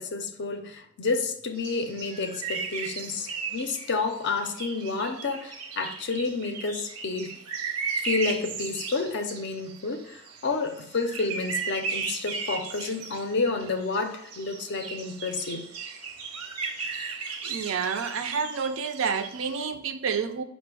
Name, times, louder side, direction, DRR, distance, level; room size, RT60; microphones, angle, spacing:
voice 1, 0.0-7.4 8.0-15.7, left 4 dB, 50° left, 0.5 m, -30 dB
sound 1, 1.6-19.6, right 5 dB, 85° right, 0.7 m, -36 dB
voice 2, 17.4-20.4, right 6 dB, 60° right, 0.4 m, -29 dB
5.0 x 2.1 x 4.6 m
head